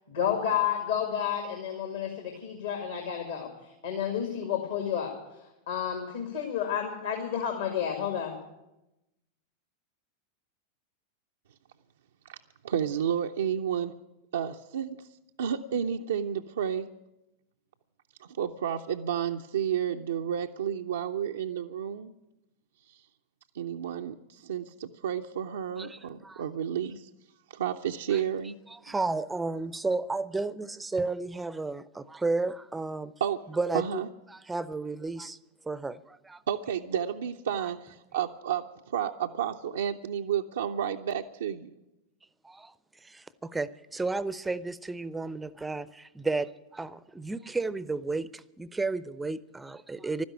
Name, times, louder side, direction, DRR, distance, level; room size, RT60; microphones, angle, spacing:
voice 1, 0.1-5.1 5.7-8.4, left 8 dB, 65° left, 3 dB, 2.1 m, -31 dB
voice 2, 12.6-13.9 14.3-15.0 15.4-16.9 18.2-22.1 23.5-27.1 27.5-28.6 33.2-33.4 33.7-34.1 36.5-41.7, right 9 dB, 65° right, 3 dB, 0.5 m, -31 dB
voice 3, 25.8-26.4 28.1-28.2 28.7-33.1 33.5-35.4 35.6-36.4 42.4-42.7 43.0-50.2, right 3 dB, 10° right, 18 dB, 0.6 m, -33 dB
12.5 x 10.5 x 10.0 m, 0.93 s
figure-of-eight pair, 90°, 0 cm